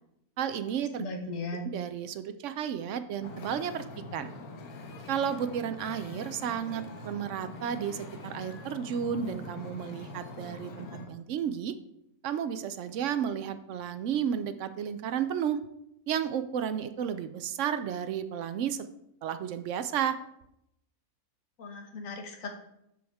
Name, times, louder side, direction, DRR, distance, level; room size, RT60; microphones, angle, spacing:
voice 1, 0.4-1.0 1.7-3.8 4.1-4.3 5.1-11.7 12.2-15.6 16.1-18.8 19.2-20.2, right 8 dB, 65° right, 11 dB, 0.8 m, -32 dB
voice 2, 1.0-1.7 21.6-22.5, left 2 dB, 65° left, 3 dB, 1.5 m, -37 dB
Wind / Ocean, 3.2-11.1, left 2 dB, 85° left, 1.5 m, -44 dB
12.5 x 4.8 x 3.5 m, 0.80 s
omnidirectional pair, 1.5 m